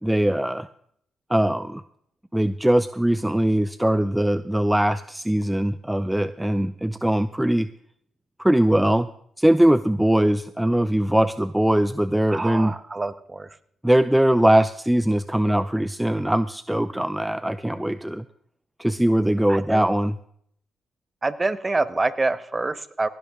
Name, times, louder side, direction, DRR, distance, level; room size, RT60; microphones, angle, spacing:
voice 1, 0.0-0.7 1.3-1.8 2.3-7.7 8.4-9.1 9.4-12.7 13.8-18.2 18.8-20.1, right 1 dB, 5° right, 14 dB, 0.5 m, -21 dB
voice 2, 12.3-13.6 19.5-19.8 21.2-23.1, right 3 dB, 25° right, 14 dB, 1.1 m, -26 dB
17.5 x 11.5 x 3.7 m, 0.66 s
supercardioid pair, 60°, 0 cm